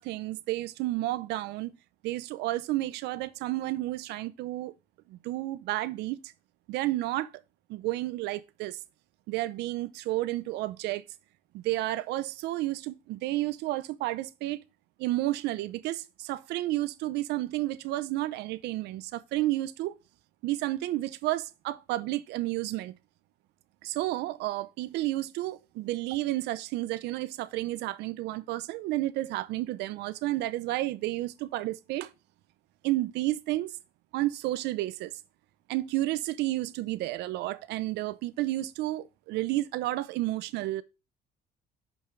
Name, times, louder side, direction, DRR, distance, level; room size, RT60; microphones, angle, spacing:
voice 1, 0.0-1.8 2.0-4.7 5.1-6.2 6.7-7.3 7.7-8.8 9.3-11.0 11.5-14.6 15.0-19.9 20.4-22.9 23.8-32.1 32.8-33.7 34.1-35.1 35.7-40.8, right 16 dB, 85° right, 0.6 m, -31 dB
6.2 x 5.4 x 3.1 m
cardioid pair, 110°, 17 cm